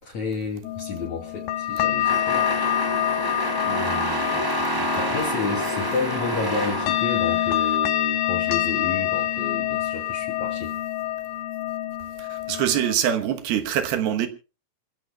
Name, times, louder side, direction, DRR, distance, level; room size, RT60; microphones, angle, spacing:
voice 1, 0.0-2.5 5.0-10.7, left 4 dB, 50° left, 3.8 m, -31 dB
sound 1, 0.6-12.9, left 12 dB, 70° left, 2.4 m, -26 dB
sound 2, 2.0-7.8, right 1 dB, 30° right, 0.4 m, -29 dB
voice 2, 3.7-4.4 4.7-5.1 12.2-14.3, right 10 dB, 80° right, 3.1 m, -26 dB
27.0 x 15.5 x 2.3 m
omnidirectional pair, 4.3 m